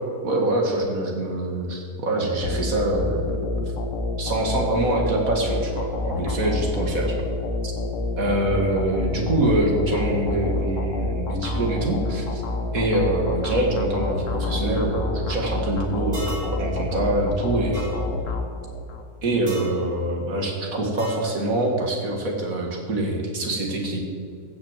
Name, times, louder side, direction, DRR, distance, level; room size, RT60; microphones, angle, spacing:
voice 1, 0.2-3.4 4.2-7.2 7.6-7.7 8.2-12.4 12.7-17.9 19.2-24.0, right 1 dB, 55° right, 1 dB, 2.6 m, -24 dB
sound 1, 2.4-19.0, left 2 dB, 55° left, 1.3 m, -28 dB
sound 2, 16.1-16.5 17.7-17.9 19.5-19.8 21.0-21.3, right 1 dB, 30° right, 3.2 m, -37 dB
15.5 x 6.4 x 7.6 m, 2.4 s
omnidirectional pair, 1.7 m